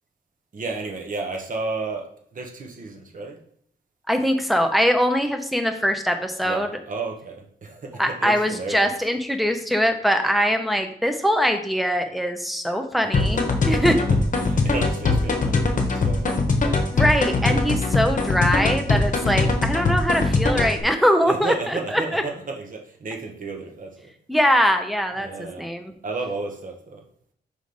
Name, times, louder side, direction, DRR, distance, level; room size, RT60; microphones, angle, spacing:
voice 1, 0.5-3.4 6.4-8.9 13.2-13.8 14.1-16.6 21.2-24.1 25.1-25.7 26.0-27.0, right 3 dB, 50° right, 2 dB, 1.2 m, -33 dB
voice 2, 4.1-6.7 8.0-13.9 16.9-21.5 21.9-22.2 24.3-25.9, equal, ahead, 5 dB, 0.7 m, -22 dB
sound 1, 13.1-20.8, left 3 dB, 50° left, 1.0 m, -21 dB
5.1 x 5.1 x 4.0 m, 0.65 s
wide cardioid pair, 150°, 17 cm